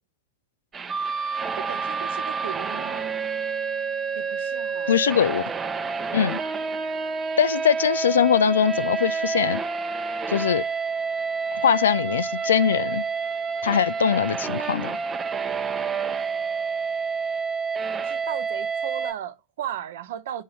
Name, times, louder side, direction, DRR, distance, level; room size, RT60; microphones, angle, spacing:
sound 1, 0.7-19.1, right 5 dB, 20° right, 0.8 m, -28 dB
voice 1, 1.6-3.1 4.1-4.9 17.9-20.4, right 11 dB, 55° right, 0.8 m, -36 dB
voice 2, 4.9-5.4 6.1-6.4 7.4-9.6 10.3-10.6 11.5-13.0 13.6-14.9, left 8 dB, 65° left, 0.3 m, -22 dB
8.2 x 3.8 x 4.2 m
figure-of-eight pair, 90°, 0 cm